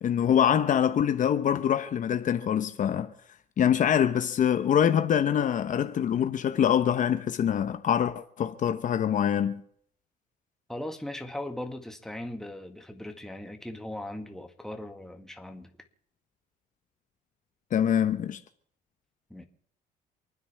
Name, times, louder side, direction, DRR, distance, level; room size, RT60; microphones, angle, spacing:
voice 1, 0.0-3.1 3.6-9.6 17.7-18.4, left 9 dB, 50° left, 1.0 m, -24 dB
voice 2, 10.7-15.7 19.3-19.5, left 1 dB, 5° left, 1.8 m, -38 dB
28.5 x 9.7 x 3.5 m
cardioid pair, 110°, 17 cm